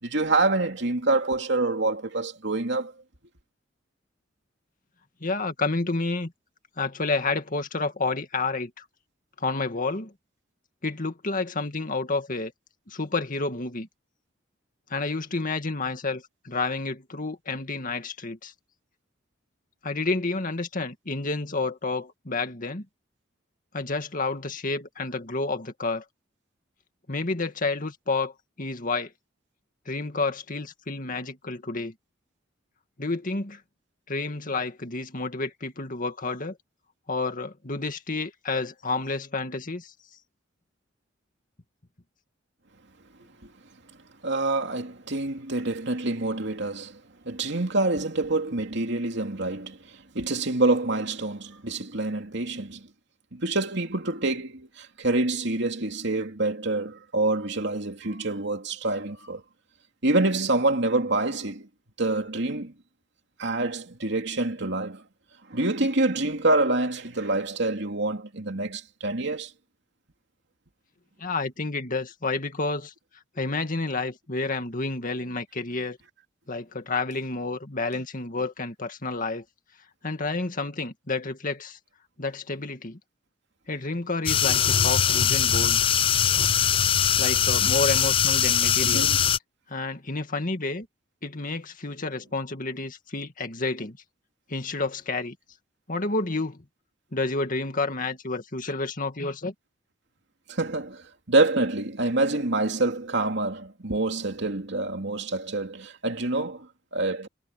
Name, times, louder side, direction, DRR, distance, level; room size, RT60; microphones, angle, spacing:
voice 1, 0.0-2.9 43.4-43.5 44.2-47.0 47.2-52.9 53.3-59.4 60.0-61.7 62.0-62.7 63.4-65.0 65.5-69.5 88.8-89.2 100.5-107.3, right 2 dB, 65° right, 2.9 m, -26 dB
voice 2, 5.2-6.3 6.8-8.9 9.4-10.1 10.8-12.5 12.9-13.9 14.9-18.5 19.8-22.9 23.7-26.0 27.1-29.1 29.9-31.9 33.0-33.6 34.1-36.6 37.1-39.9 71.2-72.9 73.4-76.0 76.5-79.4 80.0-81.8 82.2-83.0 83.7-85.9 87.2-89.1 89.7-90.9 91.2-94.0 94.5-95.4 95.9-96.6 97.1-99.5, left 3 dB, 45° left, 2.1 m, -30 dB
sound 1, 84.3-89.4, left 8 dB, 30° left, 0.4 m, -21 dB
head